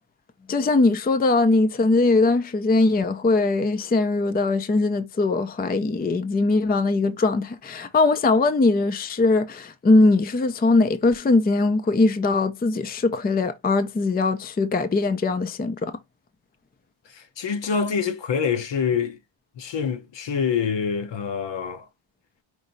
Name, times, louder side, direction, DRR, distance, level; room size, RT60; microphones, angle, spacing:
voice 1, 0.5-15.9, left 3 dB, 20° left, 0.4 m, -21 dB
voice 2, 17.1-19.2 19.6-21.9, left 6 dB, 65° left, 0.9 m, -26 dB
5.0 x 2.7 x 3.9 m
wide cardioid pair, 155°, 47 cm